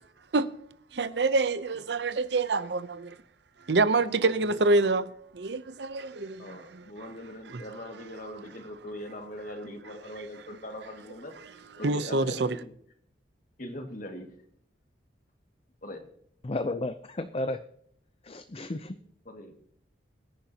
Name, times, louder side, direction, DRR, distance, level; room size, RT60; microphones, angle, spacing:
voice 1, 0.9-3.1 3.7-5.1 5.3-6.8 7.5-7.6 11.8-12.5, right 3 dB, 70° right, 0.7 m, -26 dB
voice 2, 4.0-4.6 6.4-12.7 13.6-14.3 15.8-16.1 19.3-19.5, left 1 dB, 50° left, 2.1 m, -41 dB
voice 3, 16.4-17.6 18.2-19.0, left 2 dB, 35° left, 0.5 m, -32 dB
23.5 x 10.5 x 2.9 m
head